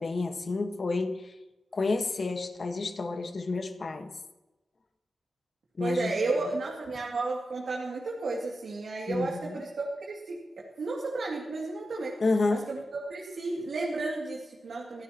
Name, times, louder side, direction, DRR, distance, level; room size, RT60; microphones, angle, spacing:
voice 1, 0.0-1.3 1.7-4.1 5.8-6.5 9.1-9.5 12.2-12.7, left 3 dB, 50° left, 1.5 m, -30 dB
voice 2, 5.8-10.4 10.8-12.1 12.7-15.0, right 3 dB, 75° right, 2.6 m, -33 dB
25.0 x 14.5 x 3.1 m
cardioid pair, 75°, 0 cm